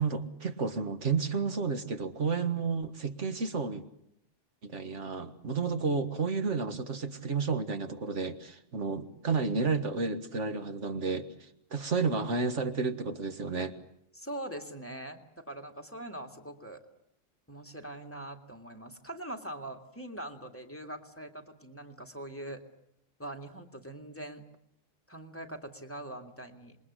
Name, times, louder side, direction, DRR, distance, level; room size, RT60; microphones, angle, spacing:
voice 1, 0.0-3.8 4.6-11.3 11.7-13.7, right 4 dB, 80° right, 8 dB, 2.0 m, -31 dB
voice 2, 14.1-16.8 17.5-22.6 23.2-24.4 25.1-26.8, right 1 dB, 10° left, 5 dB, 2.2 m, -42 dB
27.5 x 22.0 x 8.2 m, 0.75 s
omnidirectional pair, 1.2 m